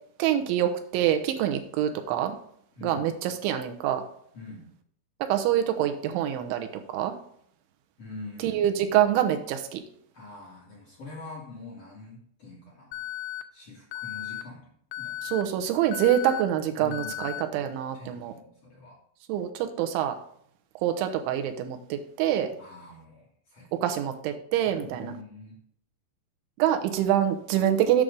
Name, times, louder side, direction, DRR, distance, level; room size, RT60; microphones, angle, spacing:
voice 1, 0.2-2.4 2.8-4.0 5.3-6.7 6.9-7.1 8.4-9.8 15.2-18.3 19.3-20.1 20.8-22.5 23.8-25.1 26.6-28.0, right 11 dB, 85° right, 6 dB, 3.1 m, -25 dB
voice 2, 2.7-3.1 4.3-4.7 8.0-9.0 10.1-13.0 13.5-14.7 15.0-15.4 16.8-17.3 17.9-19.0 22.6-23.8 24.8-25.6, left 3 dB, 50° left, -5 dB, 2.1 m, -44 dB
Alarm, 12.9-13.4 13.9-14.4 14.9-15.4 15.9-16.4 16.9-17.4, left 11 dB, 85° left, 3.0 m, -35 dB
8.6 x 6.4 x 5.1 m, 0.66 s
omnidirectional pair, 5.5 m